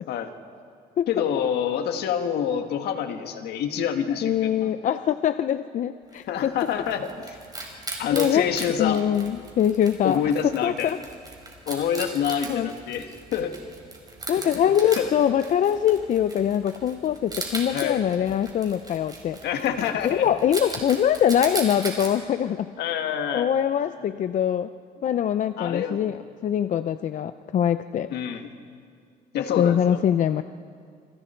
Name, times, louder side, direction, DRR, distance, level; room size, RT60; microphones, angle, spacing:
voice 1, 1.1-4.7 6.3-7.4 8.0-9.0 10.0-10.9 11.7-13.5 14.3-14.6 15.0-15.1 17.7-18.0 19.4-20.3 22.8-23.5 25.6-26.0 28.1-28.5 29.3-30.0, left 8 dB, 75° left, 6 dB, 1.9 m, -27 dB
voice 2, 4.2-6.5 7.5-7.7 8.1-8.5 8.8-10.2 10.6-11.0 12.5-12.7 14.3-19.4 20.0-22.7 23.3-24.7 25.0-28.1 29.6-30.4, left 9 dB, 50° left, 11 dB, 0.6 m, -23 dB
Wild animals, 6.1-22.1, right 3 dB, 20° right, 4.8 m, -38 dB
27.5 x 25.5 x 4.5 m, 2.2 s
cardioid pair, 110°, 17 cm